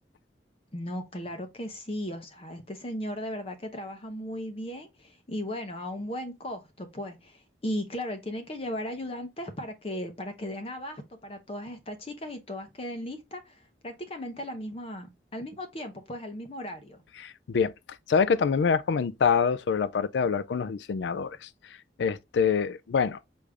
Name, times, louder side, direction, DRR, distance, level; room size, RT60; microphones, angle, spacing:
voice 1, 0.7-17.0, left 1 dB, 35° left, 0.7 m, -36 dB
voice 2, 17.2-17.7 18.1-21.5 22.0-23.2, left 6 dB, 85° left, 0.4 m, -25 dB
4.9 x 2.6 x 3.3 m
head